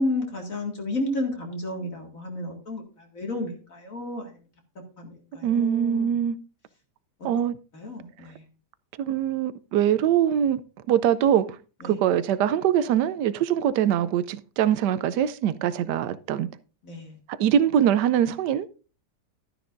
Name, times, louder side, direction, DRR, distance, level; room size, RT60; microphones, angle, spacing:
voice 1, 0.0-4.4 5.0-6.1 7.7-8.5 11.8-12.0 16.8-17.2, left 1 dB, 50° left, 2.4 m, -32 dB
voice 2, 5.4-6.4 7.2-7.5 9.0-11.6 11.8-16.5 17.3-18.7, right 10 dB, 80° right, 1.2 m, -23 dB
12.0 x 10.0 x 2.6 m
omnidirectional pair, 1.8 m